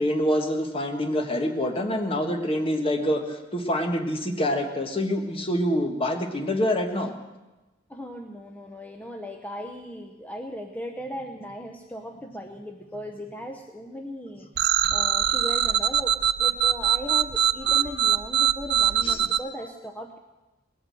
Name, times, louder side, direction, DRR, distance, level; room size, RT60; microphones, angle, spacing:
voice 1, 0.0-7.1 17.6-17.7 19.0-19.2, left 1 dB, 30° left, 4 dB, 1.5 m, -26 dB
voice 2, 7.9-20.2, left 1 dB, 10° left, 2 dB, 0.8 m, -38 dB
sound 1, 14.6-19.4, right 9 dB, 60° right, 0.5 m, -22 dB
20.0 x 8.4 x 7.7 m, 1.1 s
head